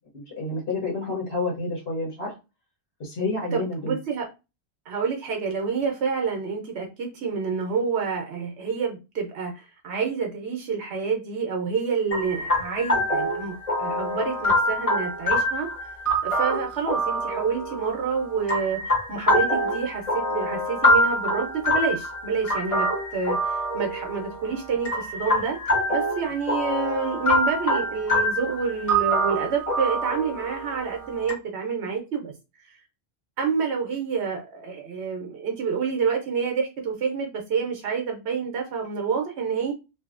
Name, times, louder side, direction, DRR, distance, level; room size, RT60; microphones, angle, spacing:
voice 1, 0.1-2.3 3.0-4.0, left 3 dB, 65° left, -5 dB, 1.4 m, -29 dB
voice 2, 3.5-4.3 4.9-15.7 16.2-18.8 19.1-22.9 23.1-25.6 25.9-32.3 32.7-32.8 33.4-39.7, right 5 dB, 75° right, 2 dB, 0.9 m, -28 dB
sound 1, 12.1-31.3, equal, 30° left, 1.2 m, -25 dB
2.7 x 2.6 x 2.4 m, 0.27 s
omnidirectional pair, 1.2 m